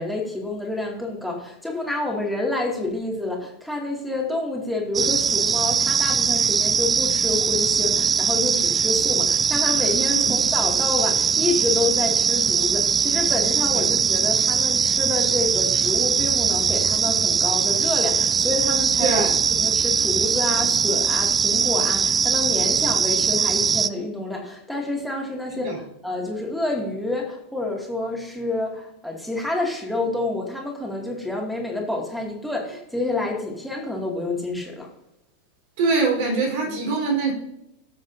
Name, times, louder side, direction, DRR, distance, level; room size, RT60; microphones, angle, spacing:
voice 1, 0.0-19.2 19.5-34.9, left 2 dB, ahead, -1 dB, 2.3 m, -28 dB
sound 1, 4.9-23.9, right 6 dB, 20° right, 0.3 m, -21 dB
voice 2, 19.0-19.3 25.5-25.8 35.8-37.3, right 4 dB, 50° right, 0 dB, 4.3 m, -23 dB
17.5 x 7.5 x 2.7 m, 0.82 s
figure-of-eight pair, 90°, 0 cm